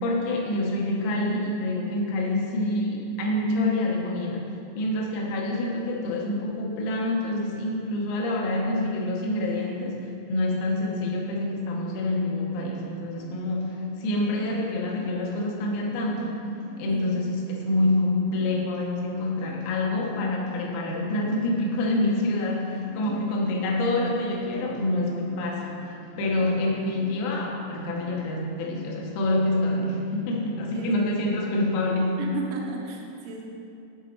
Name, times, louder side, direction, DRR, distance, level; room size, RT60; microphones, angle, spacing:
voice 1, 0.0-4.5 4.8-16.3 16.8-32.2, left 1 dB, 90° left, -2 dB, 3.7 m, -27 dB
sound 1, 12.5-32.1, left 1 dB, 70° left, 1.4 m, -44 dB
voice 2, 30.7-31.3 32.2-33.5, right 4 dB, 80° right, -1 dB, 3.3 m, -36 dB
9.7 x 4.2 x 4.4 m, 2.6 s
omnidirectional pair, 5.9 m